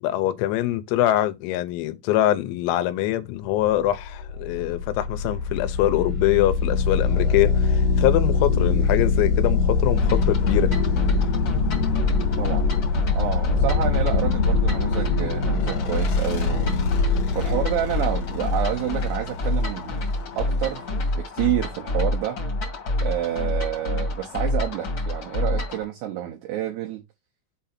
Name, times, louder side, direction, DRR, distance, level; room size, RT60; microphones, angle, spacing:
voice 1, 0.0-10.7, left 14 dB, 90° left, 3.5 m, -23 dB
sound 1, 3.7-21.1, left 4 dB, 70° left, 2.0 m, -24 dB
sound 2, 10.0-25.8, left 1 dB, 55° left, 1.3 m, -27 dB
voice 2, 12.4-12.7 13.2-16.8 17.3-20.0 20.4-20.9 21.1-22.4 23.0-27.0, right 12 dB, 85° right, 2.3 m, -29 dB
7.5 x 2.8 x 5.8 m
omnidirectional pair, 5.9 m